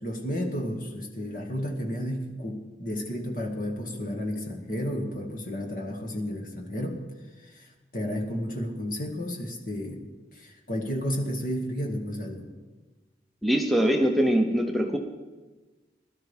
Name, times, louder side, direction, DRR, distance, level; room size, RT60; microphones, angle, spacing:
voice 1, 0.0-7.0 7.4-10.0 10.3-12.5, equal, 50° left, 2 dB, 2.0 m, -32 dB
voice 2, 13.4-15.0, equal, ahead, 2 dB, 0.7 m, -23 dB
21.5 x 12.5 x 3.6 m, 1.3 s
head